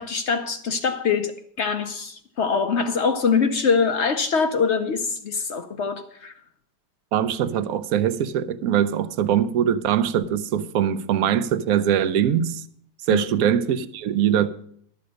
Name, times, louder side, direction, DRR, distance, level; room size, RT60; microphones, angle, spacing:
voice 1, 0.0-6.3 13.1-13.3, left 5 dB, 60° left, 0.8 m, -23 dB
voice 2, 7.1-12.6 13.1-14.5, right 9 dB, 65° right, 1.0 m, -22 dB
12.0 x 6.9 x 6.4 m
omnidirectional pair, 1.8 m